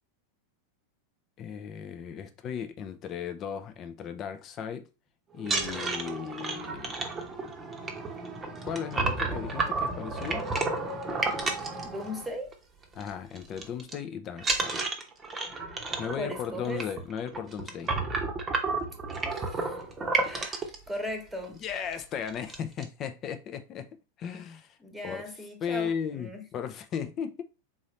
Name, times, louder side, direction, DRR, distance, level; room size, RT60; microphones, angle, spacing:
voice 1, 1.4-4.9 5.3-7.0 8.6-10.5 12.9-14.8 16.0-17.9 21.6-23.9 24.2-24.8 25.0-25.2 25.6-27.4, left 8 dB, 30° left, 0.7 m, -36 dB
sound 1, 5.4-12.5 12.8-13.1 13.4-13.9 14.4-20.8 21.4-21.5 21.9-22.0 22.3-22.8, right 3 dB, 20° right, 0.9 m, -31 dB
voice 2, 11.8-12.5 16.1-16.8 19.3-19.8 20.2-21.6 24.8-26.4, equal, ahead, 1.3 m, -38 dB
3.9 x 3.1 x 4.1 m
figure-of-eight pair, 90°, 0 cm